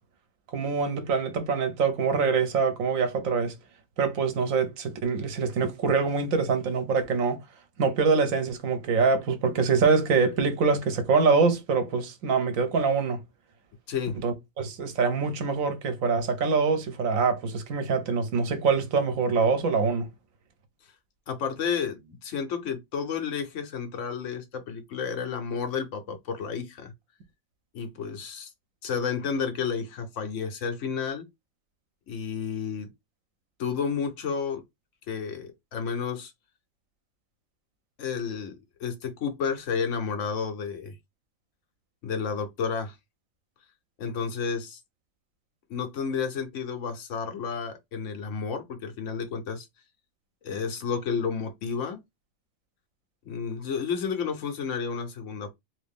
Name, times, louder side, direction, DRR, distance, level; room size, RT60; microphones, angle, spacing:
voice 1, 0.5-3.5 4.0-7.4 7.8-13.2 14.2-20.1, right 5 dB, 80° right, 1.2 m, -24 dB
voice 2, 13.9-14.2 21.3-26.9 27.7-28.5 28.8-31.3 32.1-32.9 33.6-34.6 35.1-36.3 38.0-40.9 42.0-43.0 44.0-44.8 45.7-49.7 50.4-52.0 53.3-55.5, left 6 dB, 70° left, 1.2 m, -31 dB
3.0 x 2.7 x 3.5 m
omnidirectional pair, 1.4 m